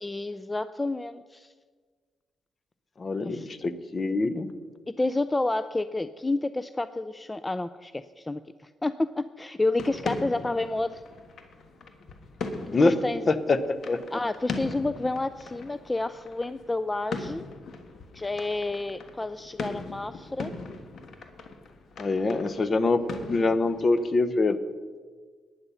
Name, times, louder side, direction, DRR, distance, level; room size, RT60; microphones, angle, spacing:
voice 1, 0.0-1.5 3.2-3.5 4.9-11.0 12.7-13.3 14.1-17.4 18.1-20.5, left 2 dB, 20° left, 13 dB, 0.4 m, -30 dB
voice 2, 3.0-4.5 12.7-12.9 13.3-14.0 22.0-24.6, left 3 dB, 40° left, 13 dB, 0.9 m, -25 dB
sound 1, 9.8-24.1, left 3 dB, 65° left, 1.3 m, -40 dB
11.0 x 9.8 x 5.6 m, 1.5 s
supercardioid pair, 65°, 0 cm